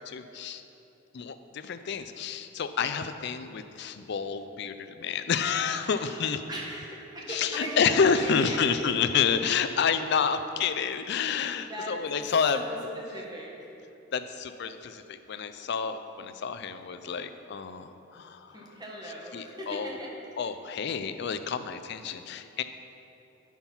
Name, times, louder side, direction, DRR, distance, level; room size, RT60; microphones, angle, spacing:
voice 1, 0.1-0.6 1.1-6.4 7.3-12.6 14.1-18.6 19.3-20.0 20.4-22.6, left 6 dB, 55° left, 10 dB, 0.4 m, -29 dB
voice 2, 5.8-8.6 11.7-12.3 12.5-13.5 18.5-20.1 22.0-22.2, right 1 dB, 20° right, -3 dB, 1.4 m, -39 dB
8.9 x 5.9 x 5.6 m, 2.9 s
head